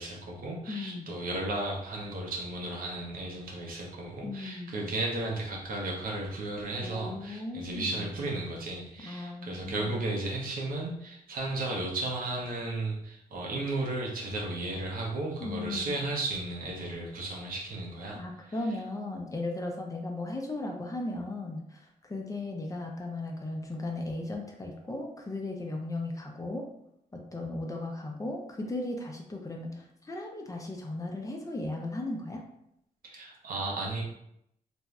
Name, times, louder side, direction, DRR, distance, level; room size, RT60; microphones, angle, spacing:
voice 1, 0.0-18.2 33.0-34.0, right 2 dB, 75° right, -1 dB, 0.8 m, -34 dB
voice 2, 0.7-1.1 4.2-4.8 6.8-8.3 9.0-10.0 15.4-16.0 18.1-26.7 27.1-32.4, left 2 dB, 20° left, 1 dB, 0.6 m, -36 dB
2.6 x 2.2 x 3.1 m, 0.76 s
cardioid pair, 70°, 15 cm